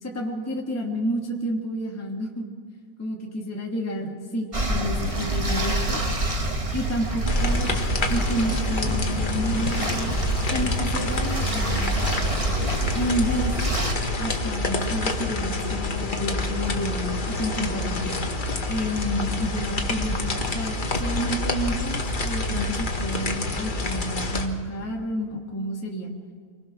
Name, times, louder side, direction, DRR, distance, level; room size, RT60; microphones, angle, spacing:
voice 1, 0.0-2.5 3.0-6.0 6.7-7.7 8.1-10.2 10.5-12.1 12.9-13.6 14.2-18.4 18.7-20.2 20.5-26.1, equal, 5° left, -1 dB, 2.0 m, -30 dB
sound 1, 4.5-13.9, right 1 dB, 20° right, 0.9 m, -27 dB
sound 2, 7.3-24.5, left 2 dB, 30° left, 0.9 m, -28 dB
25.5 x 20.5 x 6.4 m, 2.1 s
omnidirectional pair, 3.3 m